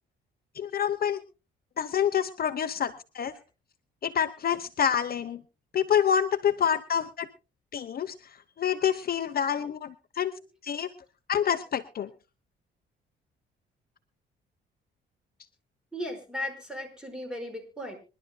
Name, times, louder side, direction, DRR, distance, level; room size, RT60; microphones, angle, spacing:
voice 1, 0.5-1.2 1.8-3.3 4.0-5.4 5.7-7.3 7.7-10.3 10.6-10.9 11.3-12.1, left 8 dB, 50° left, 11 dB, 0.8 m, -27 dB
voice 2, 15.9-18.0, left 1 dB, 5° right, 5 dB, 4.9 m, -36 dB
26.0 x 11.5 x 2.2 m, 0.30 s
cardioid pair, 90°, 20 cm